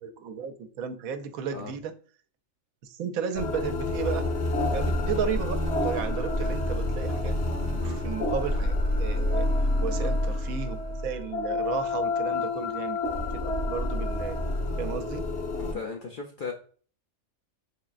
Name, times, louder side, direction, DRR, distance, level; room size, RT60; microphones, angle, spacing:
voice 1, 0.0-1.9 2.8-4.3 4.7-7.3 7.7-9.5 9.8-13.0 13.4-14.4 14.8-15.2, right 7 dB, 85° right, 1.0 m, -34 dB
sound 1, 3.4-15.7, left 2 dB, 60° left, 1.0 m, -28 dB
voice 2, 15.6-16.5, left 5 dB, 75° left, 0.4 m, -37 dB
4.0 x 3.4 x 2.4 m
omnidirectional pair, 1.4 m